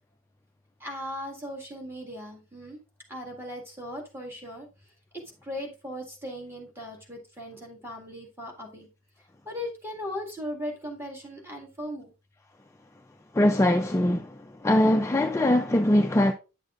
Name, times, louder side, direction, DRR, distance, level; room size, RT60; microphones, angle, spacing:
voice 1, 0.8-2.8 3.1-4.7 5.1-8.9 9.5-12.1, equal, 10° right, 1.8 m, -38 dB
voice 2, 13.3-14.3 14.6-16.3, left 1 dB, 15° left, 0.3 m, -21 dB
9.7 x 6.6 x 2.4 m
head